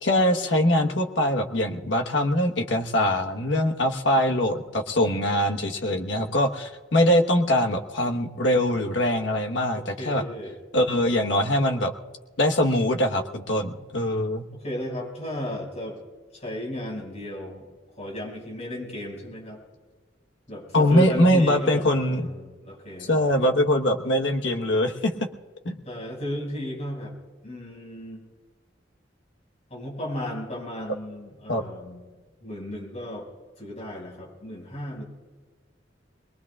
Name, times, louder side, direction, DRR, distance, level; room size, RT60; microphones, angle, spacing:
voice 1, 0.0-10.2 10.7-11.9 12.4-14.5 20.7-22.2 23.1-25.1 25.6-25.8 31.5-31.6, left 1 dB, 85° left, 3 dB, 1.2 m, -22 dB
voice 2, 9.7-10.6 14.5-16.0 16.3-17.7 18.0-19.6 20.5-23.4 25.8-27.1 27.4-28.2 29.7-32.1 32.4-33.3 33.6-35.0, equal, 40° left, -1 dB, 5.9 m, -34 dB
22.0 x 22.0 x 2.4 m, 1.5 s
head